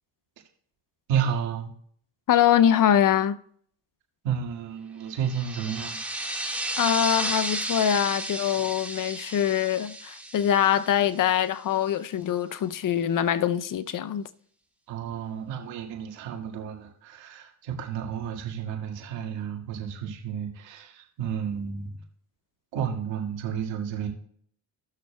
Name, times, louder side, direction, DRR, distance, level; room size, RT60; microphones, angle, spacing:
voice 1, 1.1-1.7 4.2-6.0 14.9-22.0 22.7-24.1, right 8 dB, 85° right, 2.1 m, -31 dB
voice 2, 2.3-3.4 6.8-14.3, left 10 dB, 50° left, 0.6 m, -23 dB
sound 1, 5.2-11.5, right 1 dB, 5° right, 1.7 m, -33 dB
18.0 x 6.6 x 2.3 m
supercardioid pair, 70°, 43 cm